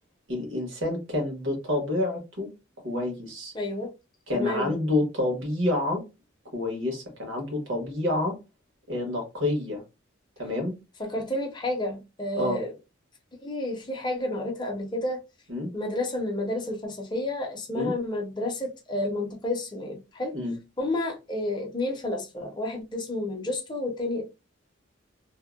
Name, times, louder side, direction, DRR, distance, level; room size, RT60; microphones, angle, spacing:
voice 1, 0.3-2.5 2.8-3.5 4.3-6.0 6.5-8.4 8.9-9.8 10.4-10.8 12.3-12.6 15.5-15.7 17.7-18.0 20.3-20.5, left 1 dB, 70° right, 1.2 m, -28 dB
voice 2, 3.5-3.9 4.3-4.7 11.0-12.7 13.4-15.2 15.7-20.4 20.8-24.2, left 1 dB, 20° left, 0.6 m, -30 dB
2.7 x 2.0 x 2.2 m
head